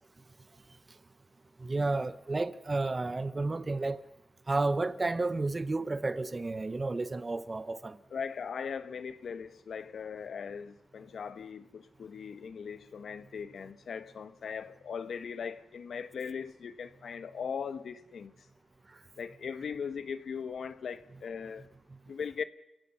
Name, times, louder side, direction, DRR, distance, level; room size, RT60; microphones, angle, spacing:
voice 1, 1.6-4.0 4.5-8.0, right 3 dB, 25° right, 0.8 m, -31 dB
voice 2, 8.1-18.3 19.2-21.6 22.1-22.4, left 6 dB, 65° left, 1.2 m, -39 dB
29.5 x 16.5 x 5.6 m
wide cardioid pair, 145°, 0 cm